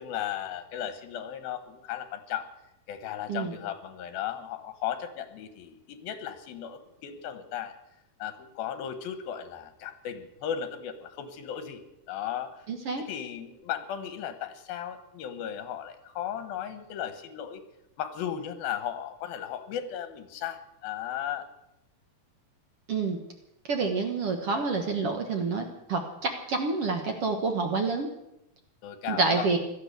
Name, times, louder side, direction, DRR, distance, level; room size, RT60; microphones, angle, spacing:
voice 1, 0.0-2.5 2.9-7.8 8.2-12.5 13.0-17.6 18.0-21.5 28.8-29.5, left 10 dB, 80° left, 10 dB, 3.1 m, -36 dB
voice 2, 12.7-13.0 22.9-23.2 23.7-28.1 29.1-29.6, right 4 dB, 55° right, 4 dB, 1.7 m, -28 dB
17.0 x 12.5 x 6.7 m, 0.85 s
omnidirectional pair, 4.2 m